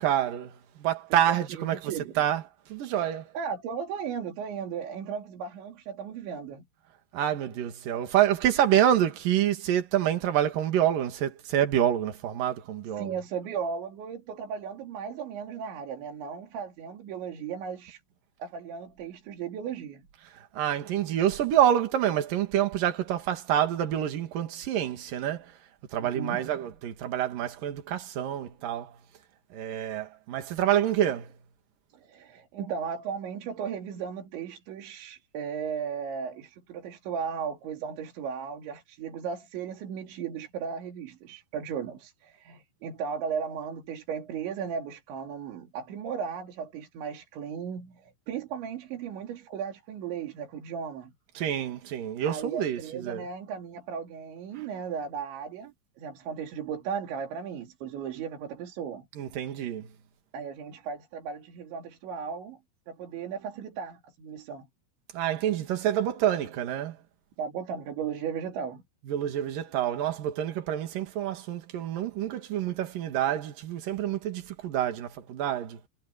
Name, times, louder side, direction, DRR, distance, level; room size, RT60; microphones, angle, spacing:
voice 1, 0.0-2.4 2.7-3.3 7.1-13.1 20.5-25.5 25.9-29.0 29.5-31.3 51.4-53.2 59.2-59.9 65.1-67.0 69.1-75.8, right 11 dB, 55° right, 3.3 m, -27 dB
voice 2, 1.1-2.1 3.4-6.7 13.0-18.0 18.4-20.1 26.0-26.4 31.9-51.1 52.3-59.1 60.3-62.6 62.9-64.7 67.4-68.8, right 7 dB, 85° right, 5.2 m, -36 dB
omnidirectional pair, 5.1 m